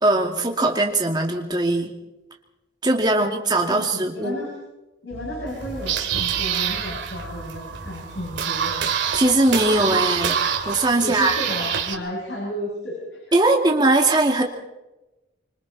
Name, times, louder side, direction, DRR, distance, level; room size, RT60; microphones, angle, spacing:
voice 1, 0.0-1.9 2.8-4.4 9.1-10.4 10.7-11.4 13.3-14.4, right 2 dB, 25° right, 1 dB, 2.5 m, -20 dB
voice 2, 3.7-4.5 5.0-8.9 11.0-13.5, equal, 80° left, -3 dB, 6.9 m, -33 dB
sound 1, 5.1-12.5, equal, 15° left, 6.5 m, -43 dB
sound 2, 5.5-11.9, right 7 dB, 85° right, 2.6 m, -26 dB
26.0 x 25.5 x 4.3 m, 1.0 s
head